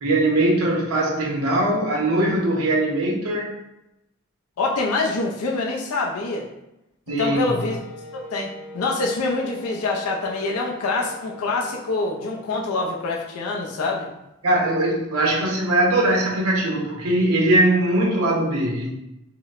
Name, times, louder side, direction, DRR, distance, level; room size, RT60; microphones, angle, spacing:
voice 1, 0.0-3.5 7.1-7.5 14.4-18.9, right 1 dB, 85° right, -1 dB, 0.7 m, -21 dB
voice 2, 4.6-6.5 7.2-7.8 8.3-14.1, left 3 dB, 90° left, 0 dB, 0.5 m, -25 dB
Wind instrument woodwind instrument, 7.3-13.0, left 1 dB, 55° left, 0.7 m, -41 dB
4.4 x 2.0 x 2.4 m, 0.90 s
head